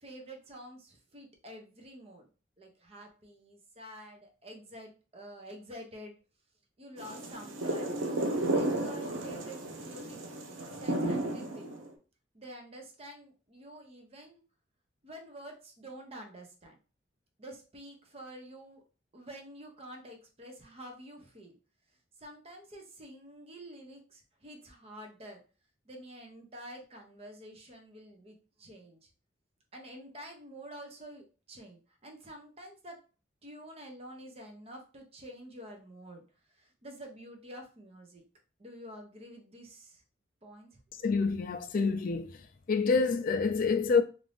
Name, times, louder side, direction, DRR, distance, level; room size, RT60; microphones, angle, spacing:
voice 1, 0.0-2.3 2.6-6.1 6.8-8.0 8.5-10.2 10.8-11.7 12.3-14.4 15.0-16.8 17.4-18.8 19.1-21.6 22.2-25.4 25.9-29.1 29.7-33.0 33.4-36.2 36.5-38.2 38.6-40.0 40.4-40.7, equal, 30° right, 0.6 m, -48 dB
sound 1, 7.0-11.9, right 2 dB, 85° right, 0.6 m, -33 dB
voice 2, 41.0-42.4 42.7-44.0, left 4 dB, 45° left, 0.3 m, -27 dB
2.6 x 2.5 x 3.3 m
head